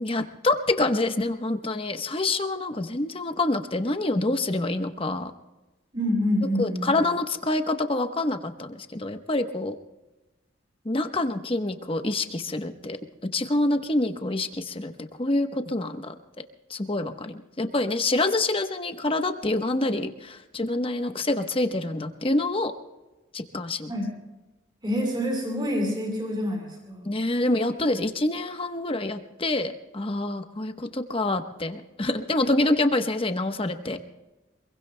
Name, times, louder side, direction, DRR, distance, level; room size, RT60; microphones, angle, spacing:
voice 1, 0.0-5.3 6.6-9.8 10.8-13.0 13.2-14.9 15.2-16.1 16.7-22.7 23.3-23.9 27.0-34.0, left 2 dB, 30° left, 7 dB, 1.0 m, -26 dB
voice 2, 5.9-7.1 23.9-24.1 24.8-27.1, left 1 dB, 25° right, -2 dB, 7.3 m, -27 dB
27.0 x 22.0 x 2.2 m, 1.1 s
head